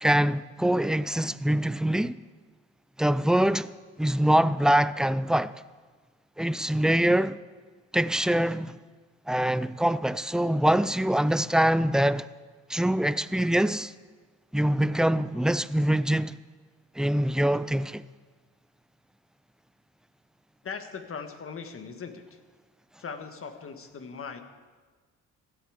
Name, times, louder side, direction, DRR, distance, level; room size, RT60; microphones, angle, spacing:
voice 1, 0.0-2.2 3.0-3.7 4.0-5.5 6.4-7.4 7.9-8.8 9.3-12.3 12.7-13.9 14.5-16.3 17.0-18.0, right 1 dB, ahead, 0.3 m, -24 dB
voice 2, 20.6-22.4 23.0-24.4, left 5 dB, 45° left, 1.6 m, -39 dB
16.5 x 13.0 x 5.0 m
cardioid pair, 90°, 30 cm